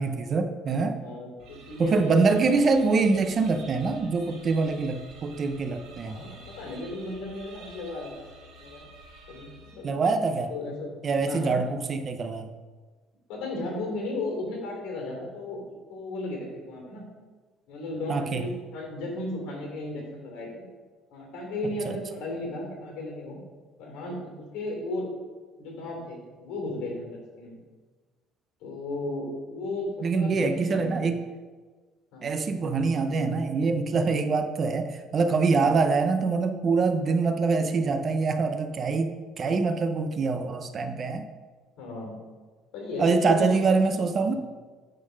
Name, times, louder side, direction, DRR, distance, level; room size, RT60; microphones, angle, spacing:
voice 1, 0.0-1.0 1.8-6.2 9.8-10.5 11.0-12.5 18.1-18.5 21.8-21.9 30.0-31.2 32.2-41.2 43.0-44.3, right 4 dB, 25° right, 8 dB, 0.5 m, -25 dB
voice 2, 1.0-2.7 6.0-8.1 8.6-8.8 9.3-9.9 10.5-10.9 11.2-11.7 13.3-15.6 15.9-17.0 17.7-20.6 21.1-23.4 23.8-25.1 25.6-27.6 28.6-31.1 32.1-32.3 35.5-35.7 41.8-42.2 42.7-44.4, left 2 dB, 75° left, 0 dB, 2.8 m, -35 dB
sound 1, 1.4-10.1, right 2 dB, 75° right, 2.4 m, -49 dB
9.5 x 3.9 x 6.3 m, 1.4 s
cardioid pair, 175°, 0 cm